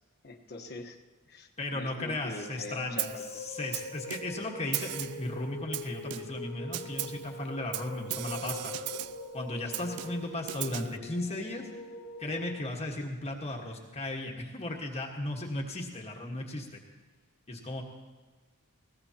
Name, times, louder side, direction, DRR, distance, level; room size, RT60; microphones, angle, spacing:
voice 1, 0.2-1.0 1.2-3.2, left 2 dB, 50° left, 2 dB, 1.3 m, -43 dB
voice 2, 1.6-8.7 9.3-11.7 12.2-16.8 17.5-17.8, left 1 dB, 30° left, 0 dB, 1.5 m, -36 dB
sound 1, 2.4-12.6, left 2 dB, 85° left, 1.5 m, -43 dB
Snare drum, 3.0-3.3 3.7-4.4 4.7-5.3 5.7-6.4 6.7-7.3 7.7-9.3 9.7-11.0, right 15 dB, 85° right, 0.4 m, -37 dB
21.5 x 17.5 x 2.9 m, 1.4 s
head